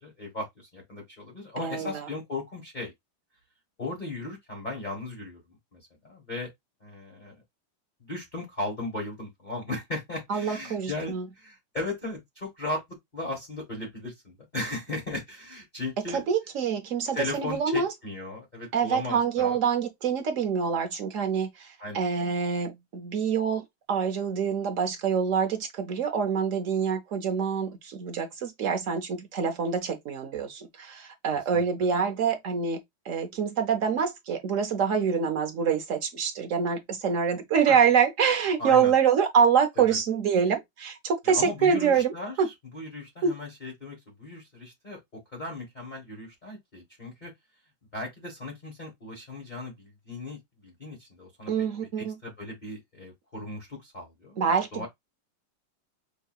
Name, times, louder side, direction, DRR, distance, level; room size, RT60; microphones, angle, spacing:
voice 1, 0.0-2.9 3.8-5.4 5.7-5.8 6.0-6.5 6.8-7.3 8.0-12.8 13.1-16.2 17.1-19.6 21.8-22.0 31.5-31.6 37.6-37.8 38.6-38.9 39.8-40.0 41.2-45.0 45.3-47.3 47.9-51.7 52.0-54.9, left 2 dB, 25° left, 1.2 m, -37 dB
voice 2, 1.6-2.1 10.3-11.2 16.1-17.9 18.7-32.8 33.1-42.1 42.4-42.5 43.2-43.3 51.5-52.2 54.4-54.9, right 6 dB, 65° right, 0.8 m, -26 dB
5.6 x 2.7 x 2.3 m
omnidirectional pair, 2.2 m